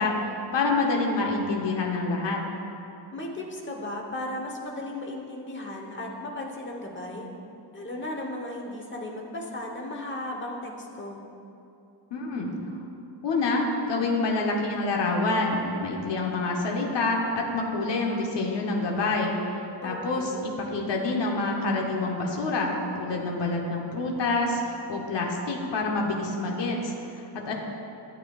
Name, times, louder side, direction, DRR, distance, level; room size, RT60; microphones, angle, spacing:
voice 1, 0.0-2.4 12.1-12.5 13.2-19.4 19.8-27.5, left 3 dB, 65° left, 0 dB, 1.1 m, -27 dB
voice 2, 3.1-7.3 7.7-11.2 19.8-20.4, left 1 dB, 25° left, 0 dB, 1.1 m, -36 dB
13.5 x 8.7 x 2.4 m, 2.8 s
wide cardioid pair, 165°, 46 cm